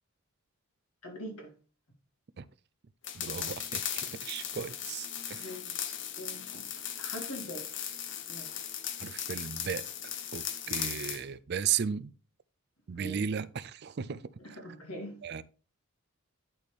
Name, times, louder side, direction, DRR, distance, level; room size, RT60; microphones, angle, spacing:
voice 1, 1.0-1.5 5.3-7.7 8.3-8.5 10.6-10.8 12.9-13.2 14.4-15.2, equal, 90° left, 2.7 m, -43 dB
sound 1, 3.0-11.2, left 9 dB, 55° left, 0.8 m, -37 dB
voice 2, 3.1-5.5 9.0-9.8 10.3-12.1 12.9-14.2 15.2-15.4, right 7 dB, 50° right, 0.4 m, -35 dB
11.0 x 4.2 x 3.5 m
head